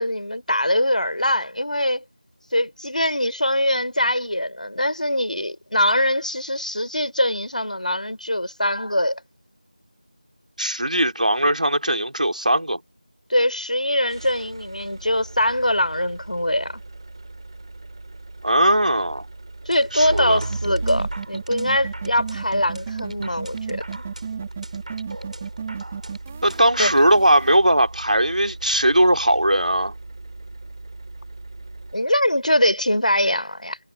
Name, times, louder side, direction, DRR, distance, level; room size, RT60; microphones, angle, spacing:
voice 1, 0.0-2.0 2.5-9.2 13.3-16.8 19.7-24.0 26.8-26.9 31.9-33.8, left 1 dB, 85° left, 3.5 m, -22 dB
voice 2, 10.6-12.8 18.4-19.2 19.9-20.4 26.4-29.9, right 1 dB, 90° right, 3.4 m, -19 dB
sound 1, 14.1-32.4, right 2 dB, 40° right, 2.3 m, -36 dB
sound 2, 19.7-27.1, right 1 dB, 70° right, 5.4 m, -42 dB
sound 3, 20.5-27.6, right 6 dB, 15° right, 1.4 m, -33 dB
figure-of-eight pair, 175°, 4 cm